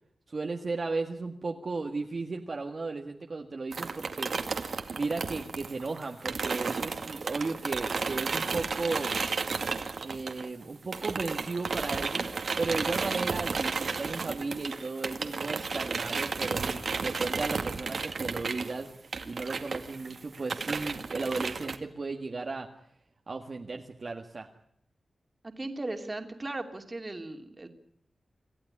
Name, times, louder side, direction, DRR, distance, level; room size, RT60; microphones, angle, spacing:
voice 1, 0.3-4.6 4.9-9.2 10.0-12.3 12.6-22.7 23.3-24.5, right 3 dB, 45° right, 2 dB, 1.7 m, -35 dB
sound 1, 3.7-10.6 10.9-21.8, right 4 dB, 60° right, 2.1 m, -33 dB
voice 2, 25.4-27.7, right 2 dB, 25° right, 6 dB, 2.7 m, -37 dB
27.0 x 15.0 x 9.9 m, 0.73 s
wide cardioid pair, 130°, 0 cm